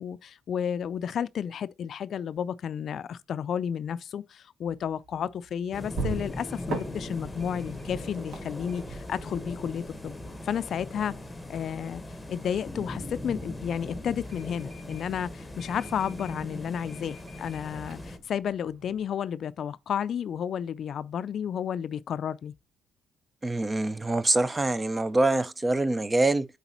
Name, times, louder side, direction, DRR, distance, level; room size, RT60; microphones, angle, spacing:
voice 1, 0.0-10.2 10.4-11.1 11.5-12.0 12.3-22.5, left 8 dB, 60° left, 0.4 m, -32 dB
sound 1, 4.7-19.1, right 4 dB, 75° right, 2.1 m, -43 dB
sound 2, 5.7-18.2, left 1 dB, 10° left, 1.2 m, -40 dB
voice 2, 23.4-26.5, right 2 dB, 20° right, 0.5 m, -25 dB
8.1 x 4.0 x 2.9 m
cardioid pair, 90°, 0 cm